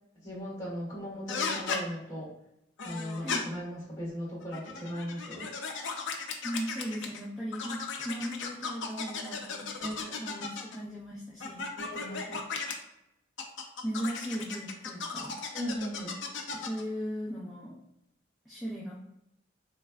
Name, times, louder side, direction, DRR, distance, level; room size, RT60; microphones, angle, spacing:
voice 1, 0.2-2.3 2.8-5.5 9.8-10.2 11.8-12.5 15.5-16.2, equal, 15° left, -9 dB, 1.5 m, -38 dB
sound 1, 1.3-1.8 2.8-3.4 4.4-7.2 7.5-10.8 11.4-12.7 13.4-16.8, left 5 dB, 70° left, 0.5 m, -36 dB
voice 2, 6.4-9.7 10.2-11.7 11.9-12.4 13.8-15.3 16.5-17.8 18.5-18.9, equal, ahead, -9 dB, 0.6 m, -37 dB
3.3 x 3.2 x 2.3 m, 0.85 s
head